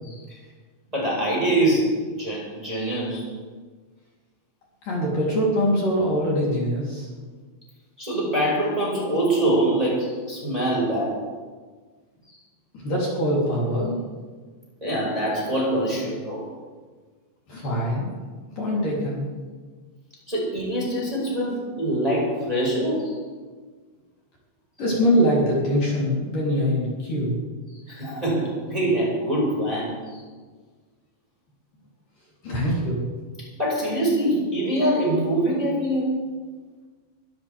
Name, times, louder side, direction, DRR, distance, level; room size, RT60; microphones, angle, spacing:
voice 1, 0.9-3.3 8.0-11.2 14.8-16.4 17.6-17.7 20.3-23.2 27.9-30.2 33.6-36.1, right 1 dB, 10° right, -5 dB, 5.1 m, -24 dB
voice 2, 4.8-7.1 12.7-14.0 17.5-18.1 18.5-19.3 24.8-27.4 32.4-33.0, equal, 45° left, -6 dB, 4.8 m, -23 dB
23.5 x 14.5 x 3.6 m, 1.4 s
omnidirectional pair, 5.5 m